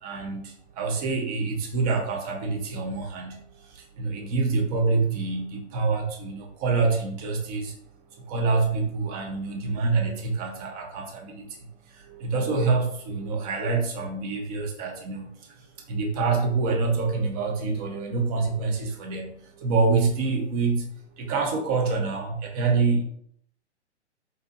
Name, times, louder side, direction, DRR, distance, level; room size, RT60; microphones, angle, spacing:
voice 1, 0.0-3.4 3.8-7.7 8.3-11.5 12.1-15.3 15.9-23.0, right 4 dB, 35° right, 1 dB, 0.8 m, -26 dB
4.0 x 2.5 x 2.5 m, 0.67 s
figure-of-eight pair, 115°, 35 cm